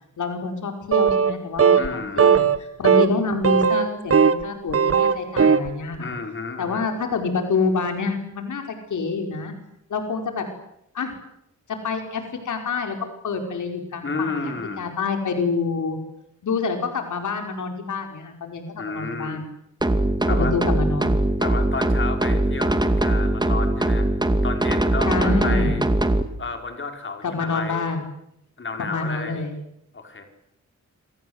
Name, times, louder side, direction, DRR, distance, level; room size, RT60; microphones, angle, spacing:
voice 1, 0.2-6.1 6.6-9.5 9.9-10.5 10.9-11.1 11.7-16.0 16.4-19.4 20.3-21.2 25.0-25.8 27.2-28.0 28.8-29.6, left 4 dB, 85° left, 5 dB, 5.0 m, -27 dB
sound 1, 0.9-1.3 1.6-1.9 2.2-2.6 2.8-3.1 3.4-4.4 4.7-5.7, right 6 dB, 50° right, 1.7 m, -17 dB
voice 2, 1.8-2.4 6.0-6.9 14.0-14.8 18.8-19.5 20.2-20.5 21.4-24.1 24.4-25.8 26.4-27.9 28.6-29.4 29.9-30.2, left 4 dB, 40° left, 5 dB, 5.1 m, -31 dB
sound 2, 19.8-26.2, right 1 dB, 15° right, 2.3 m, -21 dB
28.0 x 25.0 x 8.1 m, 0.77 s
wide cardioid pair, 105°, 29 cm